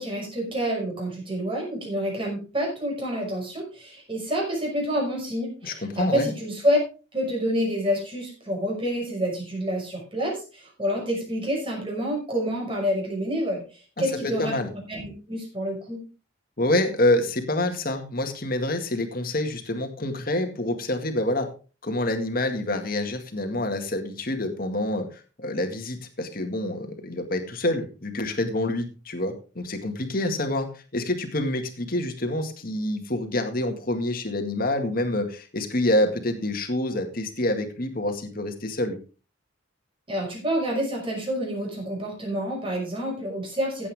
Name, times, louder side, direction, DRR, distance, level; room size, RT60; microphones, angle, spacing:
voice 1, 0.0-6.8 7.1-13.6 14.0-14.5 14.9-16.0 40.1-43.9, equal, 25° right, -1 dB, 5.6 m, -28 dB
voice 2, 5.6-6.3 14.0-14.7 16.6-21.5 21.8-39.0, left 1 dB, 45° left, 5 dB, 2.1 m, -27 dB
15.5 x 8.5 x 3.6 m, 0.34 s
head